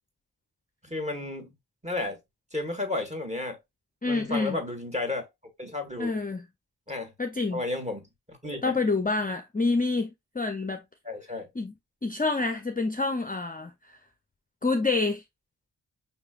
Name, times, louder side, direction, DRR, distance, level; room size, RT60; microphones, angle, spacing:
voice 1, 0.8-1.5 1.8-2.2 2.5-3.6 4.0-5.2 5.6-6.2 6.9-7.1 7.5-8.0 8.3-8.8 11.0-11.5, left 2 dB, 15° right, 1.5 m, -32 dB
voice 2, 4.0-4.6 6.0-6.4 7.2-7.6 8.6-10.8 11.6-11.7 12.0-14.0 14.6-15.2, left 3 dB, 20° left, 0.5 m, -27 dB
5.7 x 3.0 x 2.4 m
wide cardioid pair, 40°, 42 cm